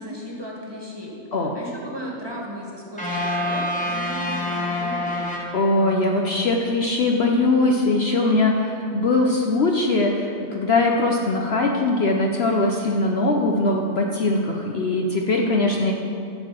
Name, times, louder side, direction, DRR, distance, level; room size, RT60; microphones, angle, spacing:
voice 1, 0.0-5.3, equal, 20° right, -3 dB, 1.7 m, -36 dB
sound 1, 3.0-6.2, left 1 dB, 5° left, 1.5 m, -27 dB
voice 2, 5.5-15.9, left 2 dB, 55° left, 1 dB, 0.9 m, -21 dB
12.0 x 4.7 x 7.7 m, 2.7 s
omnidirectional pair, 1.4 m